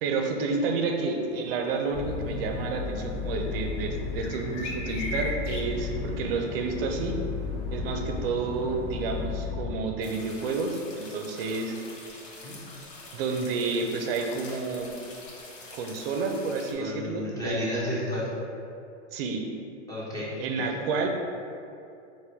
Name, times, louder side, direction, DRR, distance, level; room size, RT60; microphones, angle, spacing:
voice 1, 0.0-7.2 7.7-11.8 13.1-14.9 15.7-17.7 19.1-19.4 20.4-21.1, right 4 dB, 50° right, 3 dB, 0.6 m, -30 dB
sound 1, 1.3-9.5, left 2 dB, 35° left, 0.5 m, -43 dB
sound 2, 1.9-9.7, left 4 dB, 55° left, 1.5 m, -34 dB
sound 3, 10.0-16.7, left 2 dB, 80° left, 1.0 m, -45 dB
voice 2, 16.8-18.3 19.9-20.3, left 1 dB, 10° left, -8 dB, 0.8 m, -32 dB
3.8 x 2.6 x 4.4 m, 2.6 s
hypercardioid pair, 135°, 37 cm